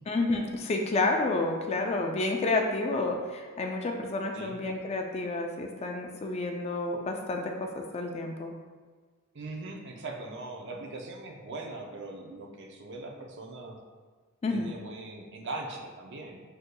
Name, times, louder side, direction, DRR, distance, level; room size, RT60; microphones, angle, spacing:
voice 1, 0.1-8.5 14.4-14.7, left 2 dB, 30° left, 2 dB, 0.3 m, -30 dB
voice 2, 9.3-13.8 14.5-16.4, right 2 dB, 55° right, 2 dB, 0.5 m, -40 dB
6.4 x 2.6 x 2.2 m, 1.5 s
head